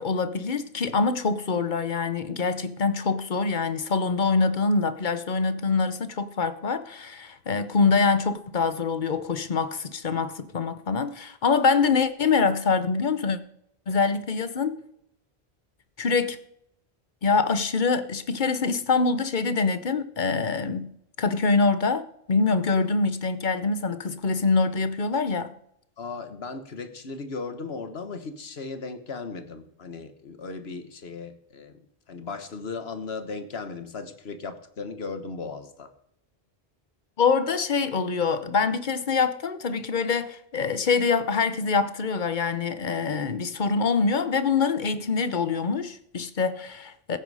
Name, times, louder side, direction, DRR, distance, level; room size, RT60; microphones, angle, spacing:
voice 1, 0.0-13.4 13.9-14.7 16.0-16.4 17.2-25.5 37.2-47.2, left 4 dB, 50° left, 1.0 m, -25 dB
voice 2, 26.0-35.9, left 4 dB, 80° left, 1.5 m, -37 dB
15.5 x 9.4 x 4.9 m
omnidirectional pair, 1.0 m